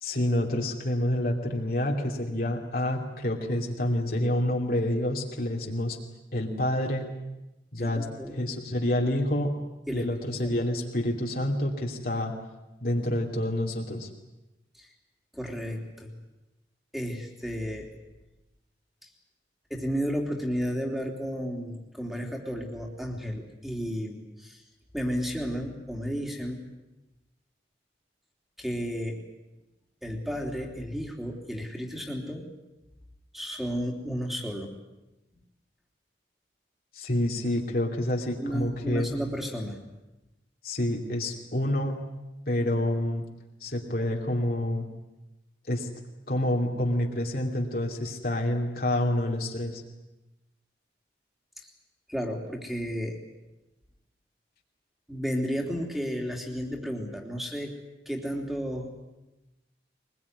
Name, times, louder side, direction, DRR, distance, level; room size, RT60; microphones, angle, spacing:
voice 1, 0.0-6.0 6.3-7.1 7.7-8.1 8.3-9.5 9.9-12.3 12.8-14.1 36.9-39.1 40.6-42.0 42.5-43.2 43.6-44.9 45.7-45.9 46.3-49.8, left 1 dB, 55° left, 0 dB, 2.8 m, -28 dB
voice 2, 7.8-8.4 9.9-10.6 14.8-14.9 15.3-16.1 16.9-17.9 19.0-19.1 19.7-24.6 24.9-26.6 28.6-29.2 30.0-32.4 33.3-34.7 38.4-39.8 52.1-53.2 55.1-57.7 58.0-59.0, equal, ahead, 2 dB, 3.2 m, -33 dB
23.0 x 21.5 x 9.8 m, 1.0 s
head